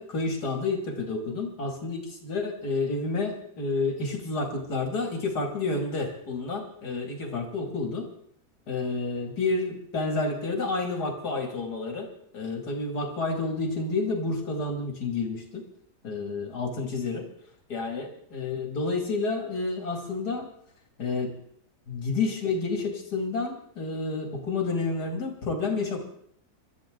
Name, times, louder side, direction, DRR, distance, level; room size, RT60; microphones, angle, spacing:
voice 1, 0.0-8.1 8.7-12.1 12.3-15.6 16.0-17.3 17.7-20.5 21.0-21.3 21.9-26.0, left 3 dB, 80° left, 2 dB, 3.1 m, -30 dB
26.5 x 13.0 x 3.9 m, 0.68 s
omnidirectional pair, 1.7 m